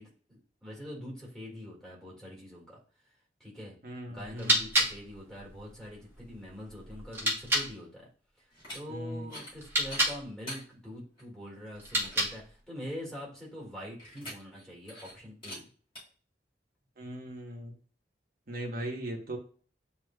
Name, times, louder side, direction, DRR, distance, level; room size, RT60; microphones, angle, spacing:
voice 1, 0.0-2.8 3.4-3.8 4.1-8.0 8.4-8.5 8.7-15.6, equal, 5° left, -4 dB, 1.8 m, -44 dB
voice 2, 3.8-4.6 8.9-9.3 17.0-17.7 18.5-19.4, right 1 dB, 55° right, -1 dB, 1.0 m, -38 dB
sound 1, 4.2-7.7 9.5-10.2 11.7-12.6, right 1 dB, 15° right, 0.9 m, -31 dB
sound 2, 8.5-8.8 9.2-9.5 9.8-10.6 11.2-11.3 11.7-11.8 12.0-12.3 14.0-14.6 14.9-15.1 15.4-15.6 16.0-16.1, left 1 dB, 30° left, 1.8 m, -43 dB
7.8 x 2.8 x 2.2 m, 0.43 s
head